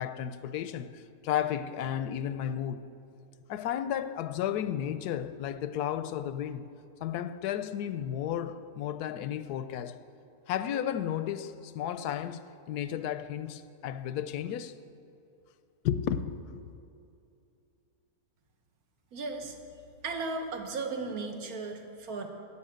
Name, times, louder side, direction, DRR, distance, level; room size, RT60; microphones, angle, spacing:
voice 1, 0.0-2.9 3.5-6.6 7.0-10.0 10.5-12.4 12.7-14.8 15.8-16.3, left 10 dB, 85° left, 1.1 m, -33 dB
voice 2, 19.1-19.6 20.0-22.3, right 3 dB, 70° right, 1.7 m, -35 dB
11.5 x 9.9 x 7.9 m
omnidirectional pair, 1.7 m